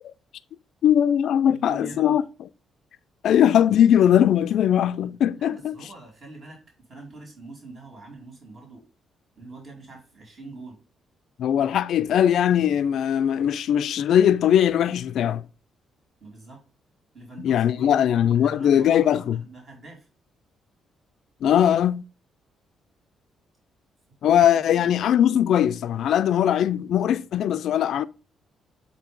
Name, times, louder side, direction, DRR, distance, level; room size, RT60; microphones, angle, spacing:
voice 1, 0.8-2.2 3.2-5.8 11.4-15.4 17.4-19.4 21.4-22.0 24.2-28.0, left 10 dB, 70° left, 0.3 m, -20 dB
voice 2, 1.5-2.2 5.3-6.6 6.9-8.8 9.4-10.8 16.2-16.6 17.1-20.1 24.5-25.1, right 2 dB, 45° right, 3.1 m, -44 dB
7.5 x 2.7 x 5.1 m
cardioid pair, 90°, 0 cm